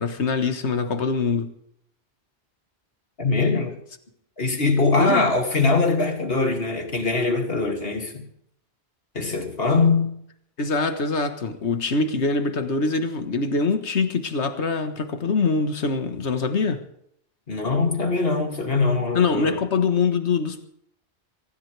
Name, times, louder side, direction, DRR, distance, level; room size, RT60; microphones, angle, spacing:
voice 1, 0.0-1.5 5.0-5.3 10.6-16.8 19.1-20.7, left 4 dB, 80° left, 1.7 m, -24 dB
voice 2, 3.2-3.7 4.4-8.3 9.1-10.1 17.5-19.6, left 3 dB, 60° left, 2.8 m, -22 dB
24.5 x 15.5 x 3.4 m
omnidirectional pair, 1.1 m